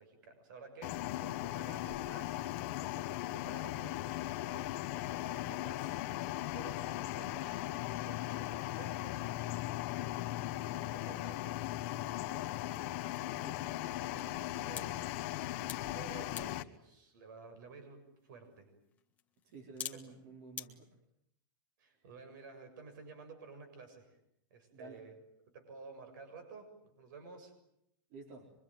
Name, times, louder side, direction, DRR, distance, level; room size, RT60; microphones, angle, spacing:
voice 1, 0.0-2.4 2.8-6.0 6.5-7.6 8.0-9.3 10.6-11.7 12.3-12.7 13.3-15.1 15.9-18.7 19.9-20.2 21.8-24.2 24.5-25.2 25.5-27.5, right 4 dB, 60° right, 8 dB, 7.2 m, -53 dB
sound 1, 0.8-16.6, left 15 dB, 40° left, 1.3 m, -38 dB
voice 2, 13.3-13.7 19.4-20.9 21.9-22.1 24.7-25.0 28.1-28.5, right 3 dB, 40° right, 3 dB, 4.0 m, -52 dB
sound 2, 14.6-20.7, left 8 dB, 15° left, 1.6 m, -52 dB
25.5 x 23.5 x 9.2 m, 0.77 s
supercardioid pair, 175°, 12 cm